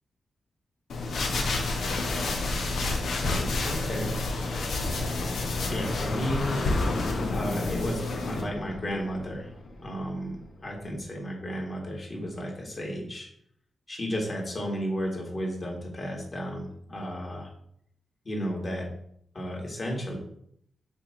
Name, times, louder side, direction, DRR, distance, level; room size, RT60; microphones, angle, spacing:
sound 1, 0.9-8.4, left 2 dB, 85° left, 1.2 m, -29 dB
voice 1, 3.2-4.1 5.7-6.5 7.3-9.5 9.8-10.4 10.6-13.3 13.9-17.5 18.2-18.9 19.3-20.2, equal, 35° left, -1 dB, 2.4 m, -33 dB
sound 2, 4.2-10.7, left 2 dB, 65° left, 1.2 m, -36 dB
6.7 x 3.6 x 6.0 m, 0.69 s
cardioid pair, 90°, 0 cm